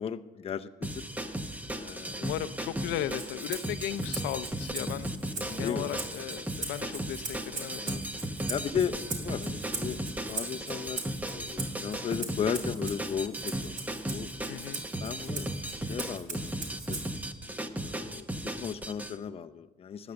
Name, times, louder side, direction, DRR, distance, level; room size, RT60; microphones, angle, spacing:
voice 1, 0.0-1.3 1.7-2.3 4.8-5.0 5.4-5.9 7.8-8.1 8.5-11.0 11.3-13.8 14.1-14.3 15.0-15.5 15.8-17.0 17.7-18.3 18.6-20.1, left 8 dB, 35° left, 9 dB, 0.6 m, -36 dB
sound 1, 0.8-19.1, right 1 dB, 10° right, 0.9 m, -36 dB
voice 2, 2.2-8.0 14.5-14.8, left 12 dB, 80° left, 13 dB, 0.5 m, -36 dB
Rattle (instrument), 3.1-17.3, right 4 dB, 55° right, 2.9 m, -41 dB
13.0 x 9.9 x 6.9 m, 1.2 s
cardioid pair, 110°, 17 cm